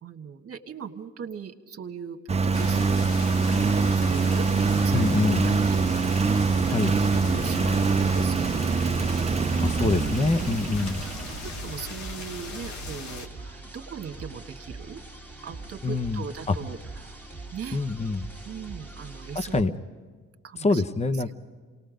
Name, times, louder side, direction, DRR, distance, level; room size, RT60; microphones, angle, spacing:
voice 1, 0.0-3.0 3.5-7.0 7.2-9.9 10.3-10.8 11.3-15.0 15.4-17.2 17.5-17.8 18.4-19.6 20.4-20.8 21.3-21.4, right 7 dB, 50° right, 6 dB, 1.6 m, -39 dB
Engine, 2.3-11.7, right 4 dB, 20° right, 0.6 m, -24 dB
sound 1, 2.5-13.3, left 4 dB, 70° left, 2.0 m, -38 dB
voice 2, 4.9-5.4 6.6-6.9 9.6-11.0 15.8-16.2 16.5-16.6 17.7-18.3 19.3-19.7 20.6-21.3, left 3 dB, 20° left, 11 dB, 0.9 m, -25 dB
sound 2, 9.4-19.6, right 3 dB, 5° left, 2.2 m, -42 dB
27.5 x 19.5 x 5.1 m, 1.5 s
cardioid pair, 90°, 30 cm